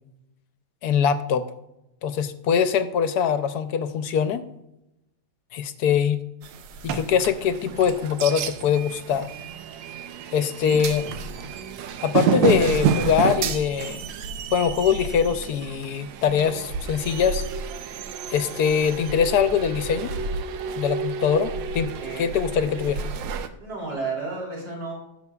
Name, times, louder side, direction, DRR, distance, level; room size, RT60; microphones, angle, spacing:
voice 1, 0.8-1.4 2.0-4.4 5.5-6.2 6.8-9.3 10.3-11.0 12.0-14.0 14.5-17.4 18.3-20.2 20.8-21.9 22.2-23.1, left 7 dB, 70° left, 11 dB, 1.1 m, -23 dB
sound 1, 6.4-23.5, right 6 dB, 85° right, 1.4 m, -30 dB
voice 2, 22.0-22.3 23.6-25.0, right 3 dB, 65° right, -3 dB, 3.9 m, -32 dB
16.5 x 6.8 x 2.3 m, 0.89 s
omnidirectional pair, 1.9 m